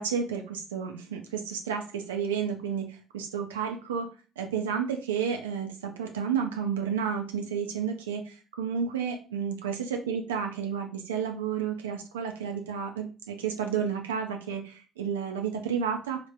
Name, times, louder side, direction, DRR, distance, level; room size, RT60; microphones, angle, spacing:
voice 1, 0.0-2.9 3.1-4.1 4.4-16.2, right 7 dB, 80° right, 4 dB, 0.3 m, -31 dB
3.3 x 2.1 x 2.6 m, 0.35 s
figure-of-eight pair, 50°, 0 cm